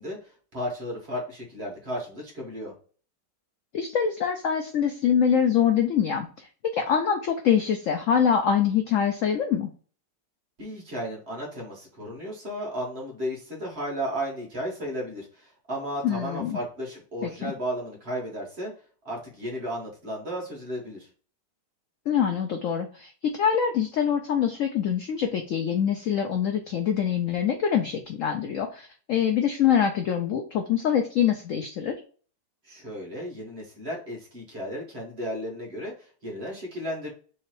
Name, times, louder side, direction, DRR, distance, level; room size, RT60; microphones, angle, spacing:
voice 1, 0.0-2.7 10.6-18.7 19.0-21.1 32.6-37.1, equal, 40° right, -2 dB, 1.7 m, -34 dB
voice 2, 3.7-6.5 6.7-9.7 16.0-16.6 17.2-17.5 22.1-32.0, left 8 dB, 70° left, 5 dB, 0.8 m, -24 dB
3.7 x 3.1 x 4.4 m, 0.40 s
omnidirectional pair, 1.9 m